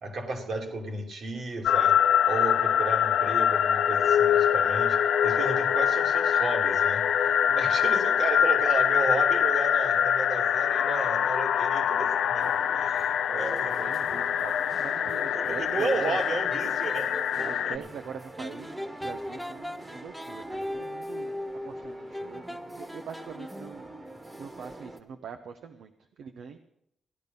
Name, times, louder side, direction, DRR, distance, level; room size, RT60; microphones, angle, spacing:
voice 1, 0.0-2.0 2.3-14.2 15.3-17.1 17.7-17.8, right 3 dB, 65° right, 2 dB, 2.4 m, -33 dB
sound 1, 1.6-17.8, left 9 dB, 80° left, 0.5 m, -24 dB
sound 2, 12.4-25.0, right 1 dB, 25° right, 1.4 m, -46 dB
voice 2, 13.8-16.2 17.4-21.4 21.6-23.9 24.4-25.9 26.2-26.6, right 7 dB, 80° right, 6 dB, 0.8 m, -43 dB
sound 3, 16.2-17.6 18.4-23.8, left 1 dB, ahead, 0.6 m, -38 dB
15.5 x 10.5 x 5.4 m, 0.78 s
cardioid pair, 65°, 0 cm